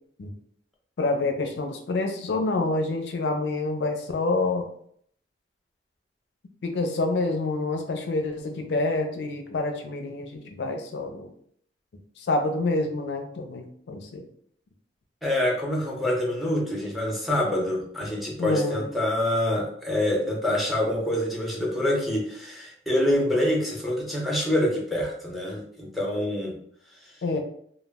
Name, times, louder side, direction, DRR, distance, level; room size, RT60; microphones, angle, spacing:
voice 1, 1.0-4.7 6.6-11.3 12.2-14.2 18.4-18.9 27.2-27.4, left 2 dB, 70° left, 4 dB, 0.4 m, -27 dB
voice 2, 15.2-26.5, left 1 dB, ahead, -3 dB, 0.6 m, -26 dB
2.1 x 2.1 x 3.4 m, 0.64 s
head